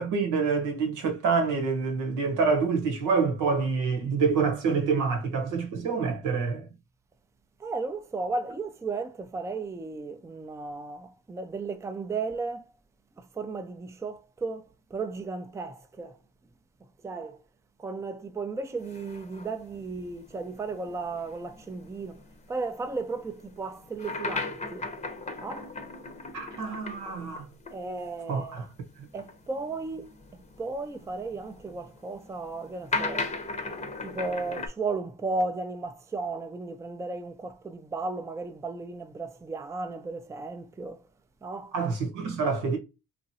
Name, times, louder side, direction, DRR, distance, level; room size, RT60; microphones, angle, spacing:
voice 1, 0.0-6.7 26.3-27.5 28.3-28.6 41.7-42.8, right 5 dB, 90° right, 1.0 m, -27 dB
voice 2, 7.6-12.7 13.2-16.2 17.0-17.4 17.8-22.2 22.5-24.9 25.4-25.7 27.7-28.7 29.1-30.1 30.6-33.3 34.0-41.0 41.4-41.7, right 3 dB, 10° right, 0.4 m, -35 dB
sound 1, 18.8-27.8 28.0-28.1 29.1-34.7, left 3 dB, 25° left, 0.7 m, -38 dB
2.9 x 2.5 x 2.7 m
cardioid pair, 90°, 30 cm